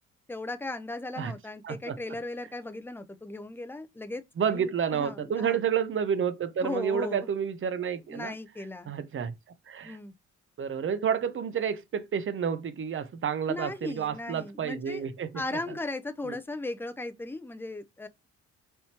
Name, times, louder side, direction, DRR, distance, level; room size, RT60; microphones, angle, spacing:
voice 1, 0.3-4.2 4.5-5.6 6.6-7.3 8.1-8.9 9.8-10.1 13.5-15.1 15.3-18.1, left 2 dB, 5° left, 0.5 m, -37 dB
voice 2, 1.6-2.0 4.4-8.3 8.9-9.3 9.7-10.0 10.6-15.3 16.3-16.4, right 7 dB, 45° right, 0.7 m, -30 dB
4.2 x 3.5 x 2.9 m
cardioid pair, 90°, 30 cm